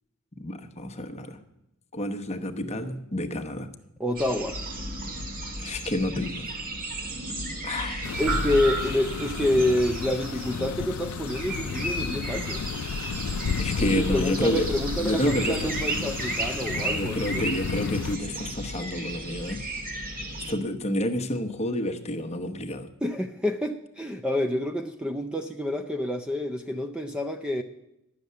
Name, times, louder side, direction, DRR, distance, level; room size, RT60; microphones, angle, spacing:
voice 1, 0.4-1.4 1.9-3.7 5.6-6.5 7.6-8.1 13.6-14.7 15.0-15.7 16.9-19.6 20.5-22.9, left 1 dB, 30° left, 6 dB, 1.0 m, -29 dB
voice 2, 4.0-4.6 8.2-12.7 13.8-17.5 23.0-27.6, left 1 dB, 5° right, 6 dB, 0.5 m, -28 dB
sound 1, 4.2-20.5, right 2 dB, 45° right, 1.8 m, -34 dB
sound 2, 8.0-18.2, left 6 dB, 85° left, 0.4 m, -33 dB
sound 3, 8.3-9.8, right 1 dB, 85° right, 2.1 m, -31 dB
11.5 x 6.7 x 9.4 m, 0.88 s
head